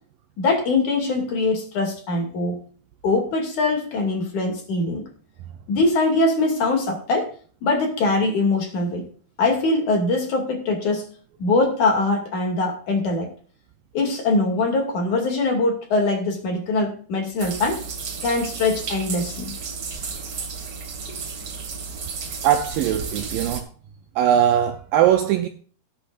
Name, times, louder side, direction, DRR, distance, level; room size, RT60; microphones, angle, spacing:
voice 1, 0.4-2.6 3.0-5.0 5.7-7.3 7.6-9.1 9.4-11.1 11.4-13.3 13.9-17.8 18.2-19.5, left 3 dB, 50° left, 3.7 m, -22 dB
sound 1, 17.4-23.6, right 5 dB, 45° right, 2.2 m, -33 dB
voice 2, 22.4-23.7 24.2-25.5, right 10 dB, 80° right, 2.1 m, -20 dB
19.5 x 8.7 x 2.6 m
omnidirectional pair, 4.7 m